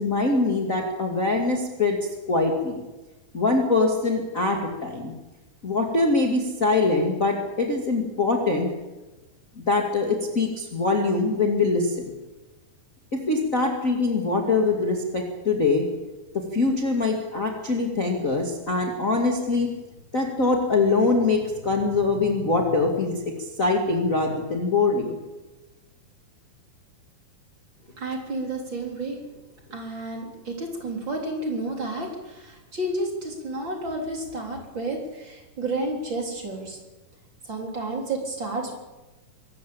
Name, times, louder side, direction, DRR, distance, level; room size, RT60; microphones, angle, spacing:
voice 1, 0.0-2.0 2.3-2.8 3.3-5.1 5.6-8.7 9.6-12.0 13.1-15.9 16.3-19.7 20.1-25.2, left 3 dB, 25° left, 1 dB, 2.1 m, -23 dB
voice 2, 27.8-29.2 29.7-36.8 37.4-38.8, right 2 dB, 30° right, 1 dB, 4.2 m, -31 dB
24.0 x 14.5 x 8.7 m, 1.1 s
omnidirectional pair, 4.1 m